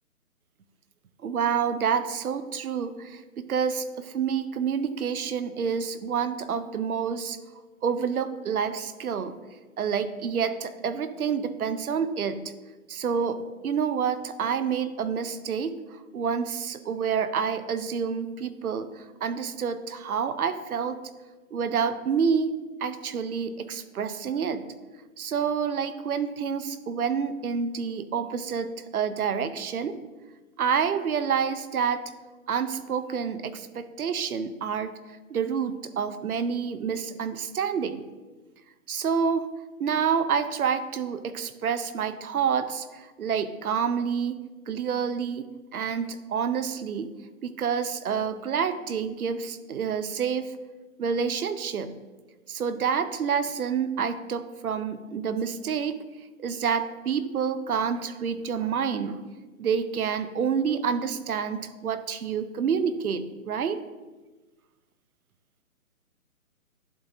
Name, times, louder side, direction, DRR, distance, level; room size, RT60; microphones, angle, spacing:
voice 1, 1.2-7.4 7.8-9.4 9.8-12.5 12.9-21.0 21.5-24.7 25.2-30.0 30.6-32.0 32.5-35.0 35.3-38.1 38.9-39.5 39.8-47.1 47.4-50.5 51.0-52.0 52.5-56.0 56.4-59.2 59.6-63.8, right 6 dB, 75° right, 12 dB, 0.7 m, -28 dB
11.0 x 4.4 x 2.7 m, 1.2 s
hypercardioid pair, 170°, 44 cm